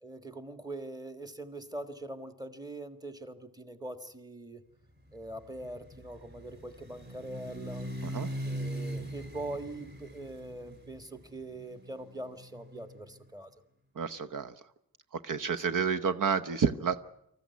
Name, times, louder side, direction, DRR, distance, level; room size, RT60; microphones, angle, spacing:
voice 1, 0.0-4.6 5.1-7.9 8.4-13.5 15.6-15.7, right 2 dB, 10° right, 9 dB, 1.6 m, -42 dB
sound 1, 5.1-13.1, equal, 30° right, 3.1 m, -41 dB
voice 2, 14.0-14.5 15.2-17.0, right 6 dB, 60° right, 11 dB, 1.0 m, -30 dB
25.5 x 14.5 x 9.4 m, 0.77 s
wide cardioid pair, 135°, 35 cm